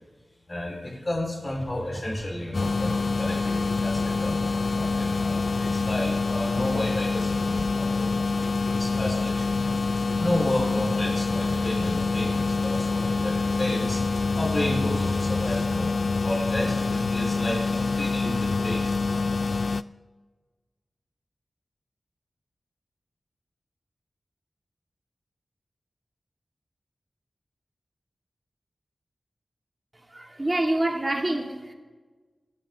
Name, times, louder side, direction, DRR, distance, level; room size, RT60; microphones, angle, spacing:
voice 1, 0.5-4.4 4.7-9.6 10.2-14.0 14.3-19.2, left 1 dB, 35° left, 4.3 m, -31 dB
sound 1, 1.5-6.8, equal, 10° right, 4.9 m, -44 dB
sound 2, 2.5-19.8, left 4 dB, 70° left, 0.4 m, -26 dB
voice 2, 30.1-31.7, right 1 dB, 25° right, 2.3 m, -26 dB
27.5 x 12.5 x 3.7 m
wide cardioid pair, 80°, 0 cm